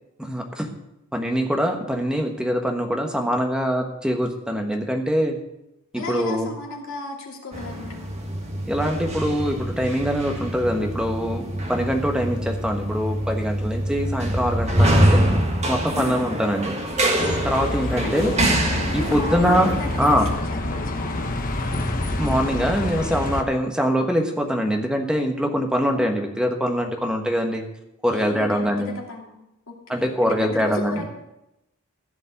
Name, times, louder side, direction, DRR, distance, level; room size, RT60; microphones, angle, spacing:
voice 1, 0.2-0.7 1.1-5.4 5.9-6.5 8.7-15.2 15.7-16.8 17.4-18.3 18.9-19.7 20.0-20.3 22.2-27.6 28.0-28.9 29.9-31.1, equal, 5° right, 3 dB, 1.3 m, -23 dB
voice 2, 5.9-8.1 16.0-16.2 17.6-18.4 19.0-21.3 28.1-31.1, left 2 dB, 65° left, -1 dB, 2.8 m, -34 dB
sound 1, 7.5-20.3, right 1 dB, 30° right, 1.8 m, -25 dB
Bus, 17.2-23.4, left 1 dB, 40° left, 1.1 m, -27 dB
15.0 x 5.2 x 8.1 m, 0.89 s
head